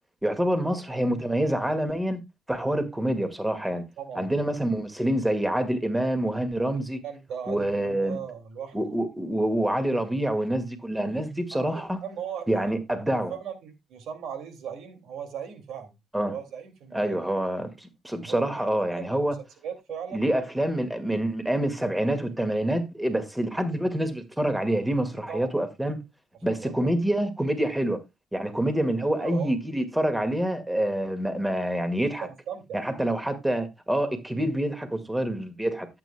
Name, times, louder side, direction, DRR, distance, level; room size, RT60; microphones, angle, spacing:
voice 1, 0.2-2.2 2.5-3.8 4.2-7.0 7.5-8.2 8.7-12.0 12.5-13.3 16.1-16.3 16.9-19.4 20.1-26.0 26.4-28.0 28.3-32.3 32.7-35.9, right 1 dB, 10° right, 1.9 m, -26 dB
voice 2, 4.0-4.4 7.0-9.0 11.5-12.7 13.3-15.9 16.3-17.2 18.1-19.2 19.6-20.3 25.3-25.5 26.6-26.9 28.8-29.5 32.2-33.0, right 8 dB, 80° right, 2.3 m, -38 dB
13.5 x 8.4 x 2.2 m
cardioid pair, 90°, 0 cm